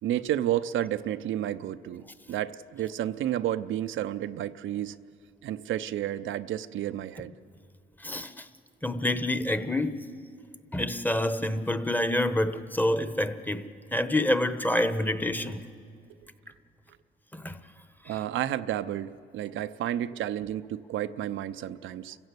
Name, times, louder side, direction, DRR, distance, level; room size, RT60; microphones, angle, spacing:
voice 1, 0.0-5.0 5.4-7.3 15.5-15.6 18.0-22.2, right 12 dB, 75° right, 11 dB, 0.6 m, -31 dB
voice 2, 8.0-8.5 8.8-10.0 10.7-15.6 17.3-17.6 18.0-18.1, left 1 dB, 10° left, 11 dB, 1.1 m, -27 dB
29.5 x 16.0 x 8.1 m, 2.4 s
cardioid pair, 90°, 20 cm